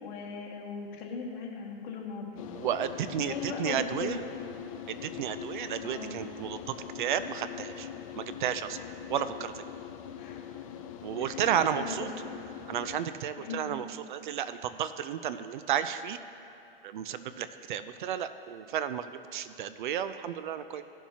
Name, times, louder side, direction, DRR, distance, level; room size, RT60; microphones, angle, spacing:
voice 1, 0.0-2.5 3.2-4.2 5.8-6.1 10.2-10.4 11.2-12.1 13.4-13.7, left 5 dB, 50° left, -3 dB, 2.0 m, -38 dB
sound 1, 2.4-13.1, left 9 dB, 35° left, 0.5 m, -42 dB
voice 2, 2.5-4.2 4.9-7.9 8.2-8.8 9.1-9.6 11.0-12.1 12.7-16.2 16.8-20.8, right 9 dB, 55° right, 12 dB, 0.5 m, -32 dB
16.0 x 7.3 x 2.9 m, 2.8 s
hypercardioid pair, 150°, 30 cm